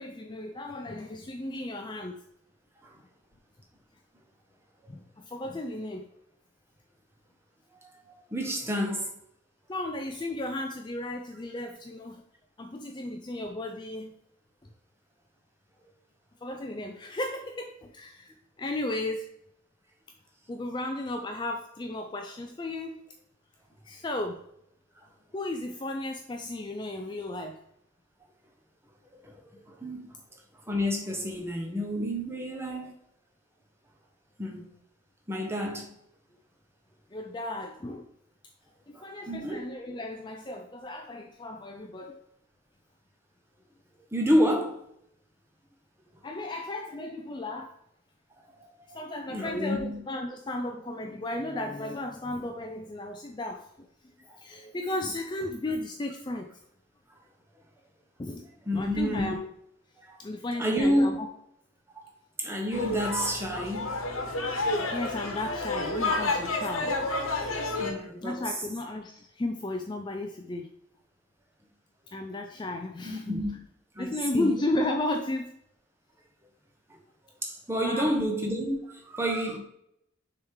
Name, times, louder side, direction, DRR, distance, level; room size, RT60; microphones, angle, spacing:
voice 1, 0.0-2.2 4.9-6.1 9.7-12.2 12.6-14.1 16.4-19.3 20.5-23.0 23.8-24.4 25.3-27.6 37.1-38.1 38.9-42.2 46.2-47.7 48.9-56.5 58.2-58.5 58.7-59.5 60.2-61.3 64.9-67.0 68.2-70.7 72.1-73.3 74.0-75.6 77.8-78.1, left 2 dB, 20° left, 0.4 m, -34 dB
voice 2, 8.3-9.1 29.2-29.3 29.7-30.1 30.7-32.9 34.4-34.6 35.3-35.9 38.9-39.6 44.1-44.8 48.9-49.0 49.3-50.0 58.7-59.3 60.1-60.2 60.6-61.1 62.4-64.5 67.6-68.4 73.0-73.5 74.0-74.6 77.4-79.6, equal, 10° right, 1.0 m, -29 dB
sound 1, 62.7-67.9, left 2 dB, 85° left, 1.2 m, -30 dB
6.2 x 3.6 x 4.7 m
head